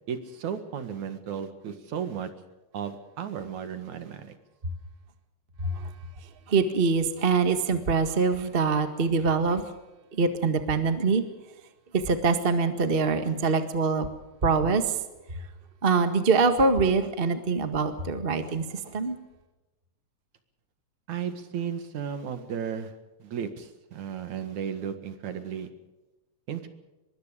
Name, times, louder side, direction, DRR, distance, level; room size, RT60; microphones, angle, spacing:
voice 1, 0.1-2.3 2.7-4.3 21.1-22.9 23.2-25.7 26.5-26.7, right 8 dB, 65° right, 9 dB, 3.1 m, -34 dB
voice 2, 5.6-5.9 6.5-9.6 10.1-11.2 11.9-14.1 14.4-15.0 15.3-15.5 15.8-19.2, right 4 dB, 25° right, 8 dB, 1.2 m, -24 dB
24.5 x 22.5 x 5.1 m, 1.1 s
omnidirectional pair, 3.7 m